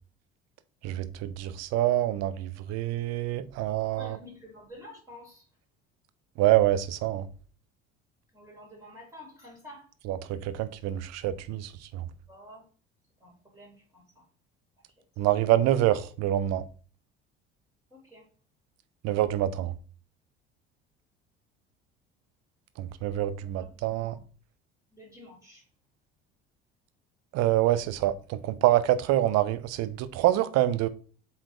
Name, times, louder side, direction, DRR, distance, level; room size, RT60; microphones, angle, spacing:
voice 1, 0.8-4.2 6.4-7.3 10.0-12.0 15.2-16.6 19.0-19.7 22.8-24.2 27.3-30.9, right 13 dB, 50° right, 0.9 m, -26 dB
voice 2, 4.0-5.4 8.3-9.9 12.3-12.6 13.2-14.0 17.9-18.2 23.4-24.0 24.9-25.6, left 1 dB, 10° right, 3.9 m, -49 dB
7.4 x 4.4 x 4.6 m
figure-of-eight pair, 55°, 34 cm